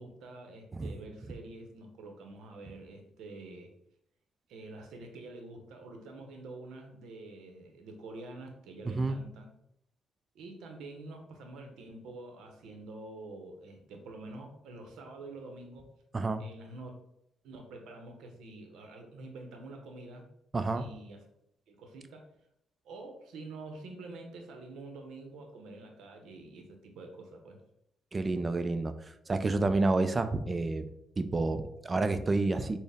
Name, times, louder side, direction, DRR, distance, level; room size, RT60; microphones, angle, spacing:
voice 1, 0.0-3.7 4.5-9.5 10.3-15.9 16.4-16.9 17.4-20.3 20.7-21.2 21.7-22.3 22.8-27.6, right 2 dB, 80° right, 4 dB, 0.7 m, -47 dB
voice 2, 8.8-9.2 16.1-16.4 20.5-20.9 28.1-28.9 29.3-30.9 31.2-32.8, right 3 dB, 30° right, 10 dB, 0.3 m, -29 dB
4.1 x 2.0 x 3.4 m, 0.75 s
cardioid pair, 90°, 0 cm